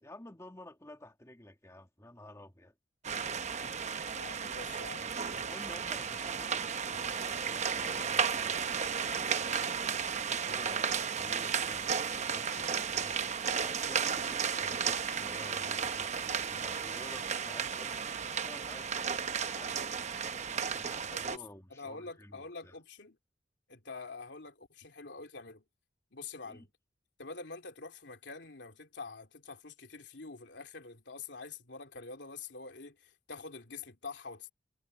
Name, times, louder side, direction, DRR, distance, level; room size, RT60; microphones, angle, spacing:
voice 1, 0.0-2.7 5.4-8.5 10.4-13.2 13.6-19.9 20.5-22.7 26.4-26.7, left 1 dB, 15° left, 2.0 m, -52 dB
sound 1, 3.0-21.4, right 6 dB, 40° right, 0.8 m, -34 dB
voice 2, 4.1-5.1 21.1-21.4 21.7-23.2 23.7-25.6 26.1-26.7 27.2-34.5, left 4 dB, 75° left, 3.1 m, -46 dB
head